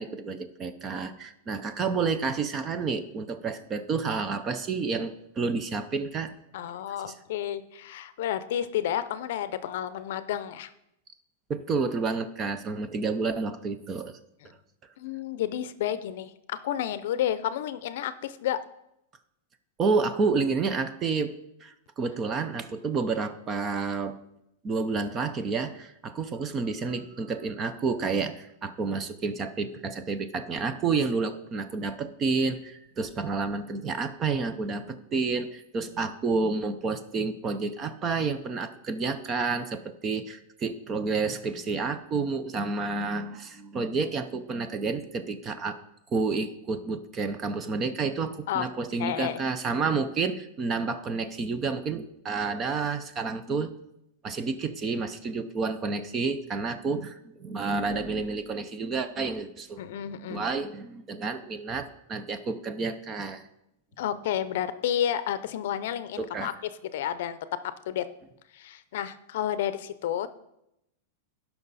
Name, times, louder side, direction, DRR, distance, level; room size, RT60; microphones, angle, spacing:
voice 1, 0.0-6.3 7.1-7.2 11.5-14.2 14.4-14.6 19.8-21.3 21.6-24.2 24.6-45.8 46.1-53.7 54.2-59.8 60.3-63.4 66.2-66.5, right 4 dB, 20° right, 10 dB, 0.5 m, -30 dB
voice 2, 6.5-10.7 14.4-14.5 15.0-18.6 48.5-48.7 49.0-49.4 59.8-60.4 64.0-66.5 66.9-67.6 67.9-68.1 68.5-70.3, left 10 dB, 55° left, 13 dB, 0.6 m, -31 dB
16.0 x 5.8 x 4.1 m, 0.83 s
supercardioid pair, 170°, 0 cm